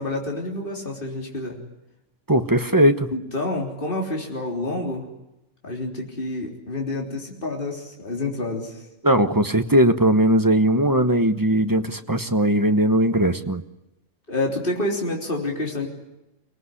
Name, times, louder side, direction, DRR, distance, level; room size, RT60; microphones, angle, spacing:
voice 1, 0.0-1.6 3.1-5.1 5.6-8.8 14.3-15.9, left 2 dB, 40° left, 0 dB, 3.9 m, -28 dB
voice 2, 2.3-3.1 9.0-13.6, right 1 dB, 15° right, 9 dB, 1.1 m, -19 dB
25.0 x 18.5 x 9.9 m, 0.93 s
omnidirectional pair, 1.4 m